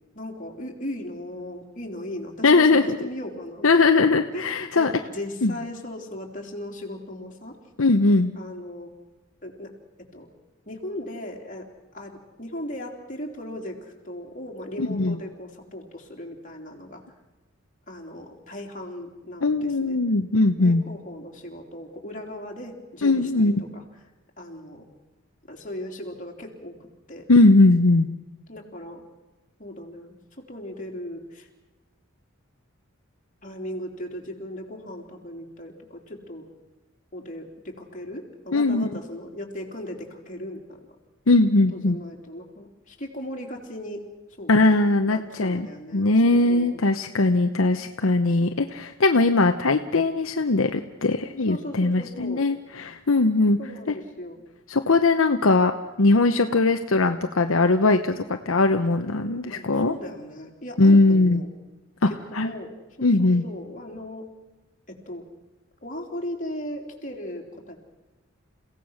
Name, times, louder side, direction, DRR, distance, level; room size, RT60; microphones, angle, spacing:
voice 1, 0.2-3.7 4.3-7.6 8.4-8.9 9.4-9.7 10.0-10.3 10.7-17.0 17.9-20.0 20.6-23.8 24.4-24.9 25.5-27.3 28.5-29.0 29.6-31.5 33.4-36.5 37.1-40.8 41.7-44.0 44.4-44.5 45.1-46.8 51.5-52.4 53.6-54.4 59.4-61.5 62.1-62.7 63.0-64.3 64.9-65.2 65.8-67.8, left 1 dB, 40° left, 1 dB, 3.5 m, -37 dB
voice 2, 2.4-3.0 3.6-4.9 5.4-5.5 7.8-8.3 14.8-15.2 19.4-20.8 23.0-23.6 27.3-28.1 38.5-38.9 41.3-42.0 44.5-45.7 45.9-53.6 54.7-55.7 56.0-59.9 60.8-61.4 62.0-62.5 63.0-63.4, left 2 dB, 75° left, 6 dB, 0.9 m, -20 dB
29.5 x 16.5 x 6.4 m, 1.1 s
head